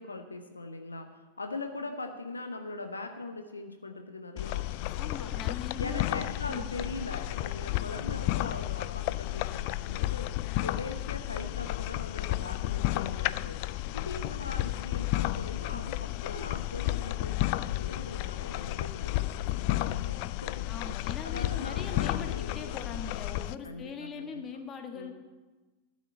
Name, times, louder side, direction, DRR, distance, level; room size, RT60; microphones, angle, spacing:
voice 1, 0.0-5.3 5.7-10.3 10.6-13.6 13.9-20.6 21.2-22.8 23.6-24.4 24.9-25.1, left 3 dB, 80° left, 6 dB, 0.9 m, -41 dB
sound 1, 4.4-23.6, left 16 dB, 45° left, 0.3 m, -32 dB
voice 2, 5.0-6.1 6.5-6.8 15.7-15.9 20.7-25.1, left 5 dB, 25° left, 5 dB, 1.5 m, -41 dB
12.0 x 6.3 x 9.1 m, 1.2 s
figure-of-eight pair, 90°, 0 cm